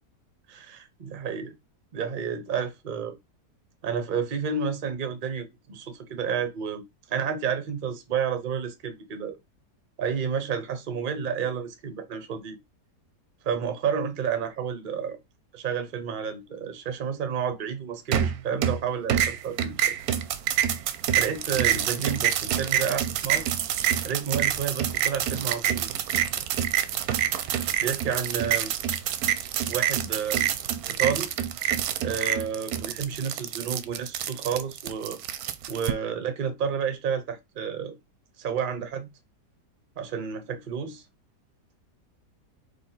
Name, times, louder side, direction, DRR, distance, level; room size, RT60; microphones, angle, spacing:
voice 1, 0.5-1.6 1.9-3.2 3.8-9.4 10.0-12.6 13.4-15.2 15.5-20.0 21.2-23.5 24.0-25.9 27.7-28.7 29.7-30.5 30.8-31.3 32.0-35.2 35.7-37.9 38.4-39.1 40.0-41.0, right 7 dB, 45° right, 0.7 m, -30 dB
sound 1, 18.1-18.8 19.1-35.9, right 10 dB, 70° right, 1.0 m, -27 dB
4.3 x 3.3 x 3.8 m
omnidirectional pair, 1.8 m